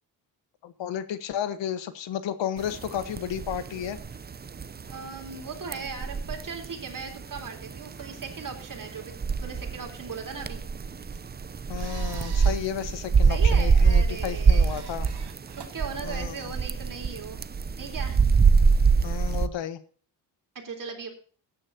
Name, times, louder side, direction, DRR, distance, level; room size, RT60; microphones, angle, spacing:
voice 1, 0.6-4.0 11.7-15.1 16.0-16.5 19.0-19.8, left 9 dB, 85° left, 13 dB, 1.2 m, -32 dB
sound 1, 2.6-19.5, right 5 dB, 25° right, 0.5 m, -24 dB
voice 2, 4.9-10.6 13.3-14.8 15.5-17.4 17.7-18.3 20.6-21.1, right 5 dB, 45° right, 3 dB, 3.6 m, -38 dB
sound 2, 11.2-16.6, right 7 dB, 65° right, 2.5 m, -48 dB
16.5 x 9.8 x 2.7 m, 0.43 s
cardioid pair, 110°, 43 cm